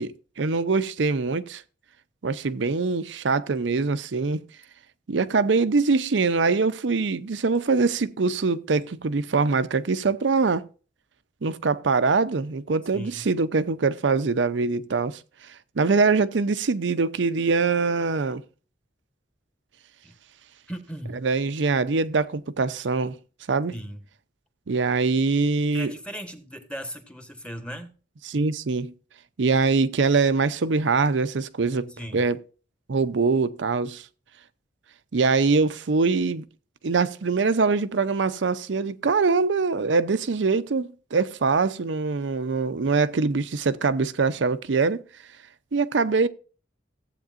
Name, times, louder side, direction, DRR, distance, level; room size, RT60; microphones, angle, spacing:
voice 1, 0.0-1.6 2.2-4.4 5.1-10.6 11.4-15.2 15.8-18.4 21.2-23.2 23.5-23.7 24.7-25.9 28.3-28.9 29.4-32.4 32.9-34.0 35.1-36.4 36.8-45.0 45.7-46.3, right 4 dB, 75° right, 0.6 m, -23 dB
voice 2, 12.9-13.3 20.0-20.2 20.7-21.2 23.7-24.0 25.7-27.9 32.0-32.2, equal, 5° left, 1.2 m, -37 dB
14.5 x 8.3 x 2.5 m
head